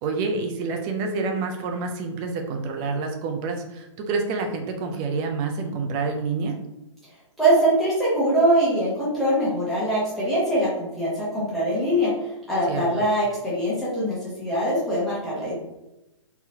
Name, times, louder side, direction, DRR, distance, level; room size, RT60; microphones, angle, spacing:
voice 1, 0.0-6.6 12.7-13.0, right 4 dB, 25° right, 4 dB, 0.5 m, -28 dB
voice 2, 7.4-15.5, right 1 dB, ahead, -10 dB, 1.2 m, -23 dB
3.9 x 2.7 x 2.8 m, 0.93 s
hypercardioid pair, 125°, 17 cm